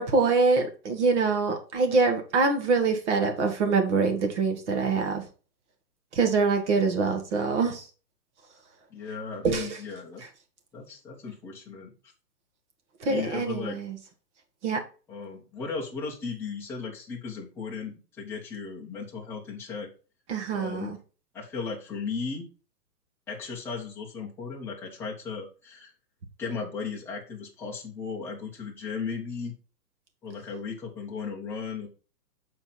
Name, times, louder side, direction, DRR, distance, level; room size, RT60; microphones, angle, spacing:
voice 1, 0.0-5.2 6.1-7.8 9.4-9.8 13.0-14.0 14.6-14.8 20.3-21.0, right 4 dB, 45° right, 5 dB, 1.8 m, -24 dB
voice 2, 8.9-10.2 10.7-11.9 13.0-13.8 15.1-19.9 20.5-20.9 21.3-22.5 23.3-25.9 26.4-29.5 30.2-31.9, left 5 dB, 5° left, -4 dB, 0.8 m, -36 dB
7.3 x 4.4 x 4.2 m, 0.35 s
hypercardioid pair, 160°, 49 cm